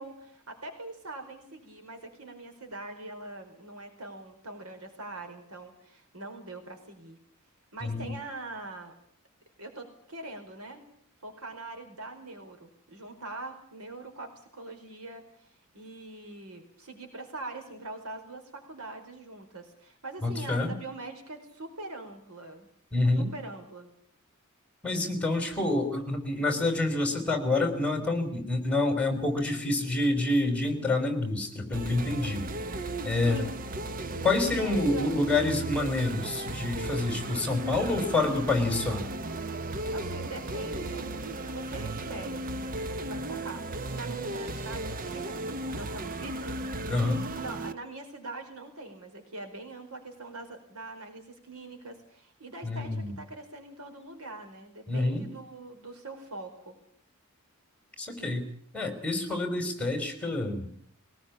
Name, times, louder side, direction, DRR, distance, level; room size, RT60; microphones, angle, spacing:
voice 1, 0.0-7.2 7.7-8.9 9.6-10.9 11.2-15.5 15.7-22.7 23.2-23.9 33.3-33.5 34.1-35.2 39.9-43.7 43.9-46.6 47.3-56.8, right 2 dB, 85° right, 6 dB, 4.8 m, -43 dB
voice 2, 20.2-20.7 22.9-23.3 24.8-32.5 33.0-33.4 34.2-39.1 46.9-47.2 52.6-53.2 54.9-55.2 58.0-58.4 58.7-60.7, left 2 dB, 5° left, 5 dB, 5.0 m, -27 dB
sound 1, 31.7-47.7, right 2 dB, 40° right, 0.9 m, -35 dB
22.5 x 19.5 x 8.7 m, 0.62 s
head